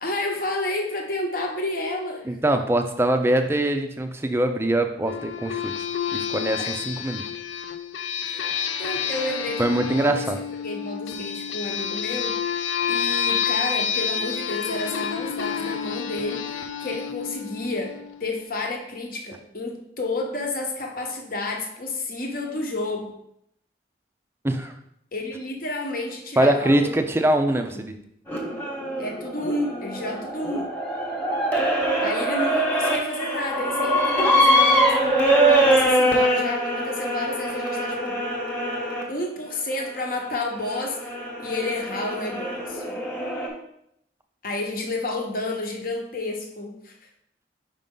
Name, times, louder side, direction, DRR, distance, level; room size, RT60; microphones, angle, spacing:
voice 1, 0.0-2.3 6.6-6.7 8.2-10.3 10.6-12.6 12.9-23.1 25.1-27.0 27.5-27.8 29.0-30.7 32.0-35.0 35.4-38.2 39.1-41.1 41.4-43.0 44.4-47.0, left 2 dB, 50° left, 1 dB, 1.0 m, -31 dB
voice 2, 2.3-5.7 6.1-7.2 9.6-10.4 24.4-24.7 26.4-27.9, right 1 dB, 15° right, 6 dB, 0.4 m, -23 dB
sound 1, 5.1-18.3, left 7 dB, 85° left, 0.5 m, -29 dB
sound 2, 28.3-39.0 39.8-43.5, right 1 dB, 10° left, 1.1 m, -23 dB
5.3 x 5.3 x 3.8 m, 0.75 s
head